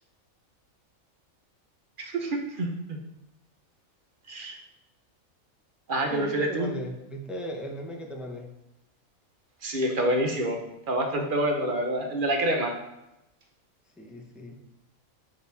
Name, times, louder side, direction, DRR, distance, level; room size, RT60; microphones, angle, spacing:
voice 1, 2.0-3.0 4.3-4.6 5.9-6.7 9.6-10.6 10.9-12.7, right 1 dB, 45° right, 2 dB, 0.9 m, -27 dB
voice 2, 6.1-8.5 14.0-14.6, equal, ahead, 0 dB, 0.4 m, -37 dB
7.3 x 4.0 x 4.1 m, 0.90 s
omnidirectional pair, 1.4 m